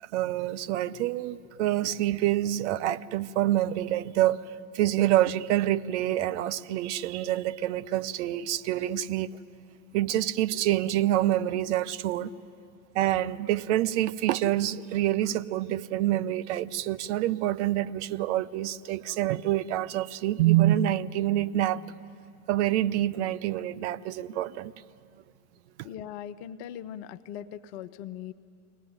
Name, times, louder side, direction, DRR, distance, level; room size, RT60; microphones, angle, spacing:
voice 1, 0.0-9.4 9.9-12.3 12.9-21.8 22.5-24.7, right 13 dB, 60° right, 13 dB, 0.8 m, -27 dB
voice 2, 25.8-28.3, left 10 dB, 55° left, 12 dB, 0.7 m, -40 dB
22.5 x 18.0 x 9.6 m, 2.4 s
figure-of-eight pair, 80°, 40 cm